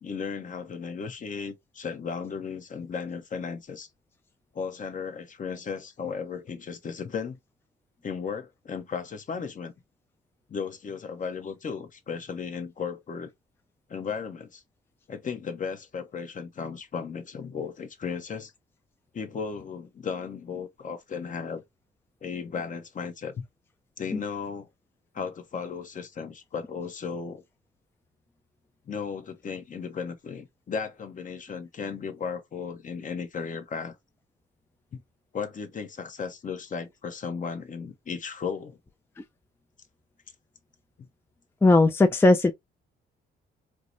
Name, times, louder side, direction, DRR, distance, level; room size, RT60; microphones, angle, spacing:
voice 1, 0.0-3.9 4.5-7.4 8.0-9.7 10.5-13.3 13.9-14.6 15.1-18.5 19.1-21.6 22.2-23.4 24.0-24.7 25.1-27.4 28.9-34.0 34.9-35.0 35.3-38.8, left 6 dB, 40° left, 0.8 m, -35 dB
voice 2, 41.6-42.5, left 2 dB, 10° left, 0.4 m, -18 dB
4.6 x 2.0 x 2.5 m
cardioid pair, 90°, 20 cm